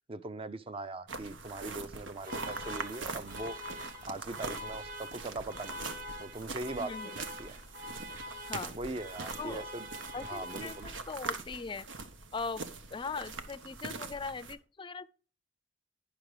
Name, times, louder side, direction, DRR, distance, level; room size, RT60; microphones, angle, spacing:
voice 1, 0.1-3.6 4.1-5.9 6.2-7.6 8.7-9.9 10.2-10.9, right 2 dB, 30° right, 0.6 m, -41 dB
sound 1, 1.1-14.5, right 4 dB, 85° right, 1.0 m, -43 dB
sound 2, 2.2-11.3, equal, 50° right, 1.5 m, -45 dB
voice 2, 6.8-7.1 8.5-8.8 9.4-9.6 10.1-11.9 12.3-15.1, left 4 dB, 25° left, 0.4 m, -40 dB
10.5 x 6.1 x 4.8 m
head